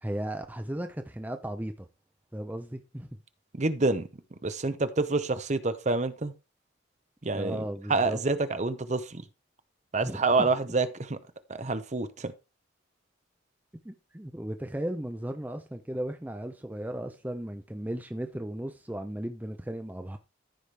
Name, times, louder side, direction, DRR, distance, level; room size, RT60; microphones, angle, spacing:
voice 1, 0.0-1.9 2.3-3.1 7.3-8.2 10.0-10.5 13.8-20.2, right 1 dB, 10° right, 0.6 m, -36 dB
voice 2, 3.5-6.3 7.2-9.3 9.9-11.2 11.5-12.3, right 3 dB, 40° right, 0.8 m, -28 dB
14.0 x 5.0 x 3.3 m
head